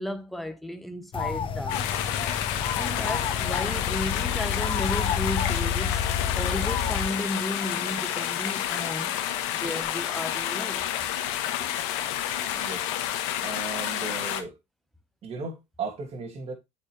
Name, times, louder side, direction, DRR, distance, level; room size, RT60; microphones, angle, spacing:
voice 1, 0.0-1.9 2.7-9.1 9.5-10.8, left 1 dB, ahead, 1.2 m, -34 dB
sound 1, 1.1-7.1, left 7 dB, 35° left, 1.0 m, -29 dB
sound 2, 1.7-14.4, left 11 dB, 80° left, 1.2 m, -30 dB
voice 2, 12.5-12.9 13.4-14.6 15.2-16.5, right 4 dB, 40° right, 2.7 m, -36 dB
8.0 x 5.8 x 3.2 m
supercardioid pair, 95°, 15 cm